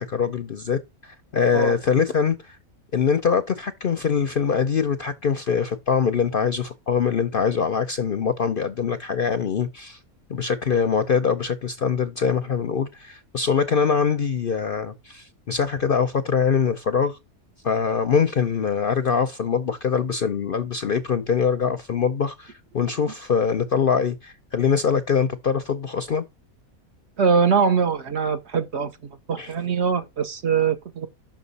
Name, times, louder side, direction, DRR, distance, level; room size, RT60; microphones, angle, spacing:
voice 1, 0.0-2.6 2.9-10.0 10.3-17.2 17.6-26.2 29.4-29.5, left 6 dB, 55° left, 0.6 m, -23 dB
voice 2, 27.2-28.9 29.3-31.1, right 6 dB, 55° right, 1.0 m, -22 dB
6.3 x 6.0 x 4.0 m
omnidirectional pair, 1.5 m